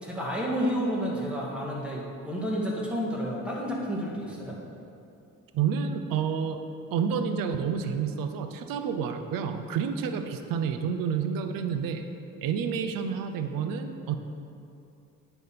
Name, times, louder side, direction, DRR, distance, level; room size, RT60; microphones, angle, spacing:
voice 1, 0.0-4.6, equal, 5° right, -4 dB, 1.9 m, -30 dB
voice 2, 5.5-6.6 6.9-12.0 12.4-14.2, right 7 dB, 75° right, 7 dB, 0.7 m, -29 dB
9.3 x 3.5 x 6.0 m, 2.6 s
supercardioid pair, 70°, 34 cm